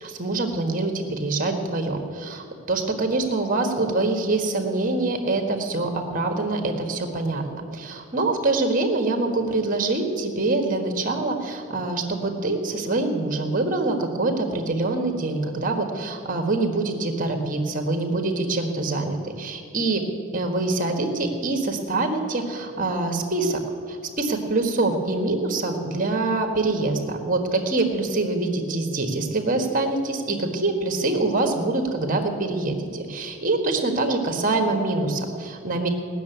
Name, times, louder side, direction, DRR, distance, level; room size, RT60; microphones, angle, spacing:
voice 1, 0.0-7.4 7.7-20.0 20.3-23.6 23.9-35.9, right 2 dB, 40° right, 4 dB, 1.6 m, -25 dB
18.0 x 6.8 x 9.3 m, 2.3 s
head